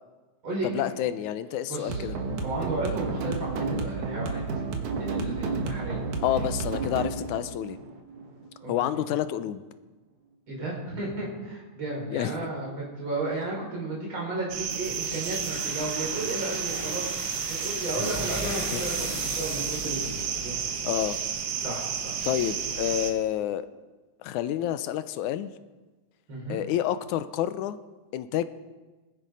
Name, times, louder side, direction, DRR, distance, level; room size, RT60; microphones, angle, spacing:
voice 1, 0.6-2.2 6.2-7.8 8.7-9.6 12.1-12.4 18.4-18.8 20.8-21.2 22.2-23.7 24.2-25.5 26.5-27.8 28.1-28.5, left 11 dB, 85° left, 13 dB, 2.1 m, -29 dB
voice 2, 1.7-2.1 2.4-4.4 5.0-6.0 8.6-8.7 10.5-20.6 21.6-22.2 26.3-26.6, right 2 dB, 40° right, -3 dB, 5.7 m, -33 dB
sound 1, 1.9-8.9, right 4 dB, 80° right, 3.0 m, -31 dB
sound 2, 14.5-23.1, right 7 dB, 60° right, 1.8 m, -32 dB
sound 3, 14.7-21.3, equal, 5° right, 6.1 m, -38 dB
20.0 x 12.5 x 5.3 m, 1.2 s
omnidirectional pair, 3.4 m